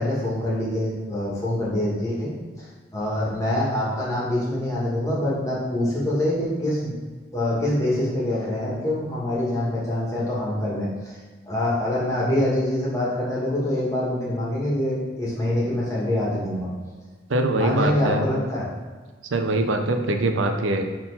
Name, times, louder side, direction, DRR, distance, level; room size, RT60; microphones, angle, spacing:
voice 1, 0.0-2.7 2.9-6.9 7.3-11.2 11.4-16.7 17.5-18.7, left 1 dB, 15° left, -6 dB, 1.7 m, -25 dB
voice 2, 17.3-18.3 19.3-20.8, right 2 dB, 80° right, 6 dB, 0.6 m, -23 dB
4.4 x 3.8 x 5.5 m, 1.4 s
head